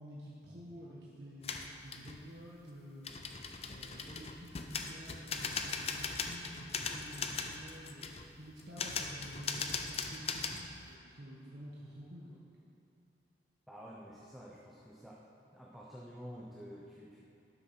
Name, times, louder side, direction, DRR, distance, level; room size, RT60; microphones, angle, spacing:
voice 1, 0.0-3.0 3.6-8.1 8.4-12.4, equal, 65° right, -6 dB, 1.6 m, -50 dB
sound 1, 1.4-2.2 3.0-10.7, left 5 dB, 35° left, 0.6 m, -39 dB
voice 2, 13.7-15.2 15.5-17.3, equal, ahead, -5 dB, 0.9 m, -50 dB
12.0 x 6.8 x 5.9 m, 2.7 s
head